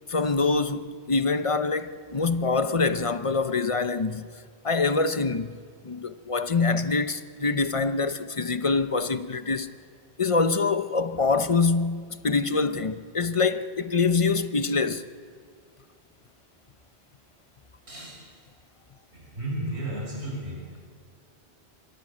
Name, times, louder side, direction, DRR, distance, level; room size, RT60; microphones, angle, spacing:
voice 1, 0.1-4.3 4.6-5.6 5.8-9.7 10.2-15.1, left 4 dB, 35° left, 0.7 m, -25 dB
voice 2, 19.1-20.6, right 1 dB, 70° right, 6.0 m, -33 dB
26.5 x 17.0 x 8.6 m
omnidirectional pair, 1.1 m